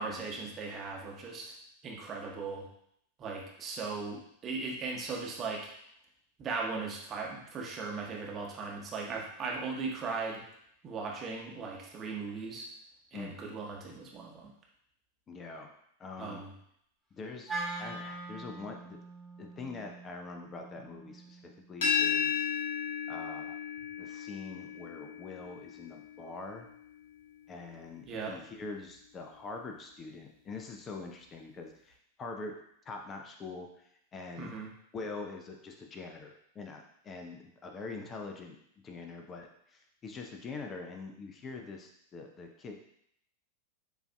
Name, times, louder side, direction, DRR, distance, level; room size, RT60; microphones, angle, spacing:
voice 1, 0.0-1.5 1.8-2.7 3.2-5.7 6.4-10.4 10.8-12.7 13.1-14.5 16.2-16.5 28.1-28.4 34.4-34.7, right 4 dB, 25° right, -1 dB, 0.9 m, -38 dB
voice 2, 15.3-15.7 16.0-16.4 17.2-17.5 17.8-19.0 19.4-22.5 23.1-23.6 24.0-26.7 27.5-32.6 32.9-34.5 34.9-38.6 38.8-42.8, left 3 dB, 25° left, 3 dB, 0.5 m, -44 dB
Wind instrument woodwind instrument, 17.5-21.7, right 2 dB, 5° right, 1.3 m, -42 dB
sound 1, 21.8-27.6, left 7 dB, 55° left, 1.1 m, -35 dB
6.8 x 2.6 x 2.3 m, 0.71 s
figure-of-eight pair, 90°, 0 cm